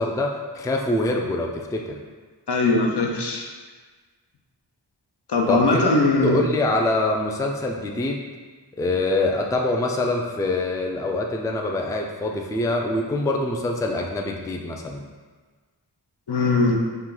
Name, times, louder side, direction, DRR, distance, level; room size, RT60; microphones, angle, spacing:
voice 1, 0.0-2.0 5.5-8.2 8.8-15.1, left 2 dB, 10° left, 1 dB, 0.3 m, -25 dB
voice 2, 2.5-3.5 5.3-6.4 16.3-16.8, left 3 dB, 65° left, 1 dB, 0.7 m, -20 dB
4.4 x 2.3 x 3.8 m, 1.4 s
wide cardioid pair, 45°, 43 cm